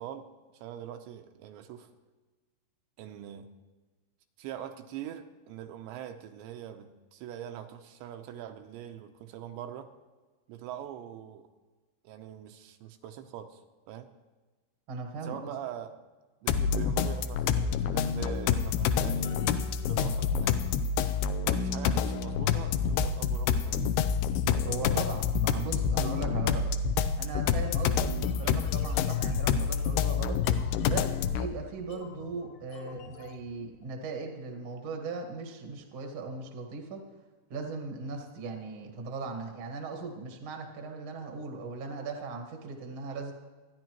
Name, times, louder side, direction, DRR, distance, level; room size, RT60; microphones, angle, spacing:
voice 1, 0.0-1.9 3.0-3.5 4.4-9.9 10.5-11.5 12.0-14.1 15.2-15.9 16.4-20.6 21.3-24.0, right 10 dB, 85° right, 6 dB, 2.9 m, -43 dB
voice 2, 14.9-15.5 24.6-26.7 27.2-30.4 30.8-37.0 37.5-43.3, right 4 dB, 65° right, 3 dB, 1.3 m, -38 dB
sound 1, 16.5-31.5, left 7 dB, 85° left, 2.3 m, -28 dB
sound 2, 28.2-33.9, left 4 dB, 65° left, 2.3 m, -51 dB
26.0 x 10.0 x 3.0 m, 1.3 s
omnidirectional pair, 5.2 m